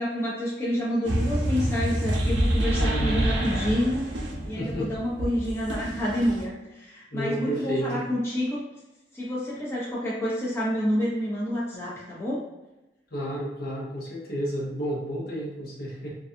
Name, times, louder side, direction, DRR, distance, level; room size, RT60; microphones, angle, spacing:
voice 1, 0.0-4.2 4.5-8.6 9.1-12.4, equal, 15° left, -7 dB, 0.5 m, -28 dB
sound 1, 1.0-6.4, right 1 dB, 80° right, 0.5 m, -27 dB
voice 2, 2.8-3.3 4.5-4.9 7.1-8.1 13.1-16.2, right 1 dB, 55° left, -4 dB, 0.8 m, -31 dB
2.4 x 2.3 x 2.6 m, 0.99 s
head